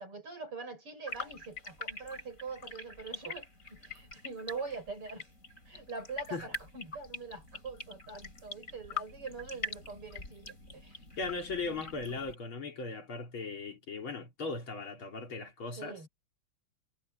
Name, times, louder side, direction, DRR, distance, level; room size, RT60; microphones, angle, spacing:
voice 1, 0.0-5.3 5.7-11.0 15.8-16.1, right 4 dB, 85° right, 8.7 m, -43 dB
sound 1, 1.1-12.3, left 3 dB, 35° left, 5.6 m, -44 dB
voice 2, 11.2-16.1, left 3 dB, 65° left, 4.2 m, -38 dB
omnidirectional pair, 2.4 m